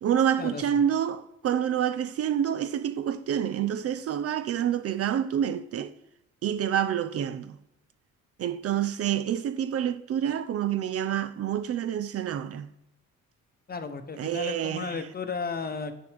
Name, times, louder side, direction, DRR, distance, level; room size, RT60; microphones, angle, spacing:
voice 1, 0.0-5.9 6.4-7.6 8.4-12.7 14.2-15.1, right 9 dB, 50° right, 0.5 m, -28 dB
voice 2, 13.7-15.9, left 5 dB, 30° left, 0.9 m, -34 dB
9.6 x 6.6 x 3.4 m
cardioid pair, 90°, 30 cm